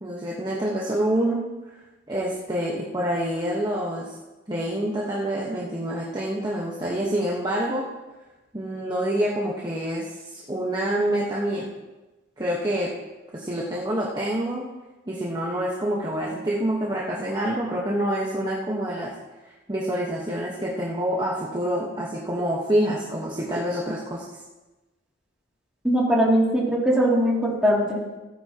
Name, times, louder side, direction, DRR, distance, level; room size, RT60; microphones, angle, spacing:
voice 1, 0.0-1.4 2.1-4.1 4.5-7.9 8.5-11.7 12.4-12.9 13.3-14.7 15.1-19.1 19.7-24.2, right 1 dB, 20° right, -5 dB, 1.3 m, -27 dB
voice 2, 25.8-28.0, equal, 5° right, -5 dB, 2.7 m, -20 dB
17.0 x 9.9 x 3.0 m, 1.1 s
head